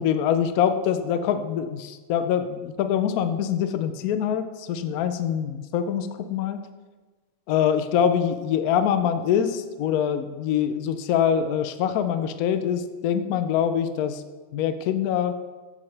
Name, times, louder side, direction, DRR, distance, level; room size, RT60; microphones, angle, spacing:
voice 1, 0.0-6.6 7.5-14.2 14.5-15.4, left 8 dB, 70° left, 9 dB, 0.9 m, -24 dB
9.4 x 7.8 x 3.3 m, 1.3 s
omnidirectional pair, 2.0 m